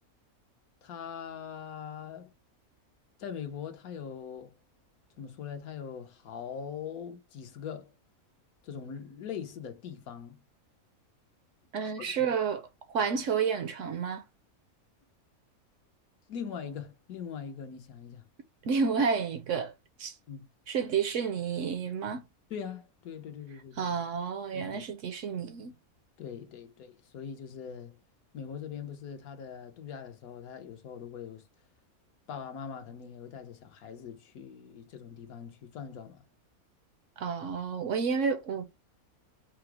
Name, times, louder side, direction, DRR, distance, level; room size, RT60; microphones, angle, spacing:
voice 1, 0.8-2.3 3.2-4.6 5.2-7.9 8.6-10.4 11.8-12.2 16.3-18.2 20.3-20.4 22.5-23.9 24.5-24.8 26.2-28.0 28.3-31.5 32.3-36.2, left 7 dB, 75° left, 1.3 m, -42 dB
voice 2, 11.7-14.2 18.6-19.7 20.0-20.1 20.7-22.2 23.8-25.7 37.2-38.7, right 6 dB, 65° right, 0.9 m, -30 dB
4.8 x 2.0 x 4.5 m
omnidirectional pair, 1.6 m